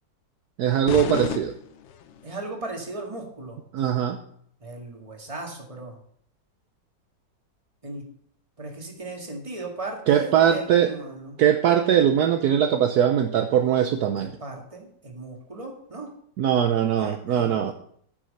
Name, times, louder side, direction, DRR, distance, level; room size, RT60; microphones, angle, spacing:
voice 1, 0.6-1.6 3.7-4.2 10.1-10.9 11.4-14.3 16.4-17.7, right 9 dB, 65° right, 6 dB, 1.1 m, -21 dB
sound 1, 0.9-2.3, left 8 dB, 80° left, 0.6 m, -32 dB
voice 2, 2.2-3.6 4.6-6.0 7.8-8.0 8.6-11.4 14.4-16.1 17.0-17.7, right 2 dB, 20° right, 1 dB, 1.9 m, -37 dB
10.0 x 6.2 x 6.6 m, 0.64 s
omnidirectional pair, 1.9 m